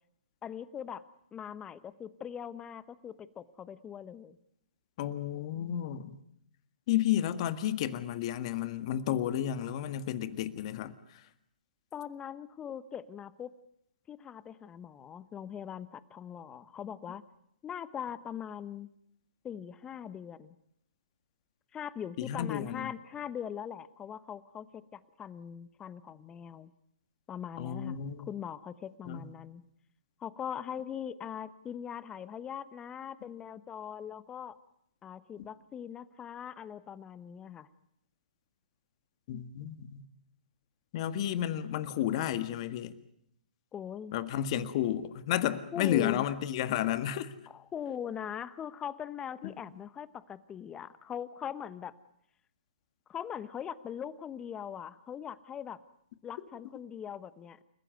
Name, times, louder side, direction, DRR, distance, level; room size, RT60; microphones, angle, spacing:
voice 1, 0.4-1.0 1.3-4.4 11.9-13.5 14.1-17.2 17.6-18.9 19.4-20.5 21.7-26.7 27.3-29.6 30.2-34.6 35.0-37.7 43.7-44.2 45.7-46.3 47.5-51.9 53.1-55.8 56.2-57.6, left 8 dB, 15° left, 16 dB, 1.1 m, -41 dB
voice 2, 5.0-6.2 6.9-10.9 22.2-22.9 27.6-28.3 29.1-29.2 39.3-40.0 40.9-42.9 44.1-47.3 49.4-49.6, left 11 dB, 45° left, 11 dB, 1.8 m, -32 dB
29.5 x 15.5 x 9.3 m, 0.73 s
hypercardioid pair, 130°, 5 cm